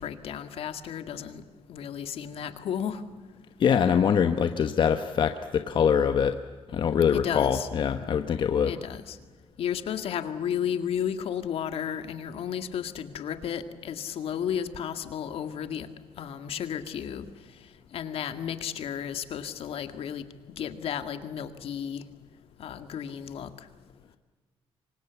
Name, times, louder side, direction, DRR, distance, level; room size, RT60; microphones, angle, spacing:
voice 1, 0.0-1.4 1.7-3.0 7.1-7.7 8.6-9.2 9.6-15.9 16.2-17.3 17.9-20.2 20.6-22.0 22.6-23.7, left 8 dB, 70° left, 9 dB, 2.1 m, -33 dB
voice 2, 3.6-6.4 6.7-8.7, left 7 dB, 50° left, 8 dB, 1.2 m, -23 dB
28.0 x 24.5 x 7.1 m, 1.3 s
cardioid pair, 150°, 10 cm